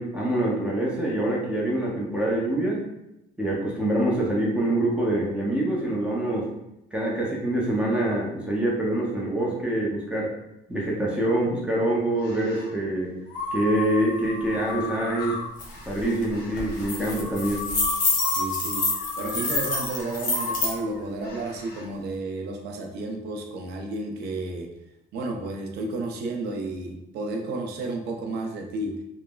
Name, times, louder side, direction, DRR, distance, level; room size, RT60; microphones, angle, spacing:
voice 1, 0.0-2.8 3.4-6.5 6.9-10.3 10.7-13.1 13.5-15.4 15.9-17.7, right 1 dB, 5° right, -5 dB, 0.6 m, -25 dB
sound 1, 12.1-12.7 13.3-21.9, left 3 dB, 75° left, 0.6 m, -35 dB
sound 2, 15.6-15.7 16.0-16.2 16.6-20.7, left 3 dB, 50° left, 0.9 m, -27 dB
voice 2, 18.3-24.7 25.1-29.0, right 2 dB, 75° right, 3 dB, 0.5 m, -32 dB
3.1 x 2.0 x 2.2 m, 0.86 s
cardioid pair, 110°, 17 cm